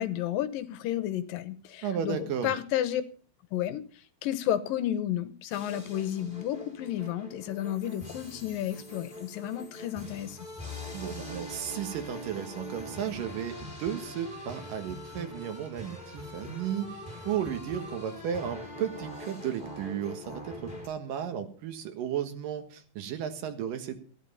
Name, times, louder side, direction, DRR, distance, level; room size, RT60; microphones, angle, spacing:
voice 1, 0.0-3.0 3.5-3.8 4.2-10.4, left 12 dB, 75° left, 13 dB, 2.5 m, -32 dB
voice 2, 1.8-2.5 10.9-17.0 17.2-24.0, right 9 dB, 70° right, 7 dB, 3.0 m, -34 dB
sound 1, 5.5-20.9, left 1 dB, 10° left, 3.8 m, -43 dB
15.0 x 11.0 x 5.5 m, 0.42 s
omnidirectional pair, 4.2 m